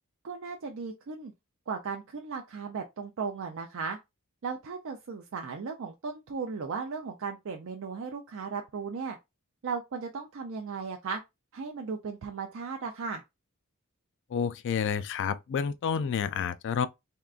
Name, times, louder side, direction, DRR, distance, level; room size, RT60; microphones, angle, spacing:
voice 1, 0.2-1.3 1.7-4.0 4.4-9.2 9.6-11.2 11.5-13.2, right 5 dB, 60° right, 0.5 m, -36 dB
voice 2, 14.3-16.9, left 7 dB, 55° left, 0.3 m, -29 dB
3.6 x 2.2 x 2.4 m
head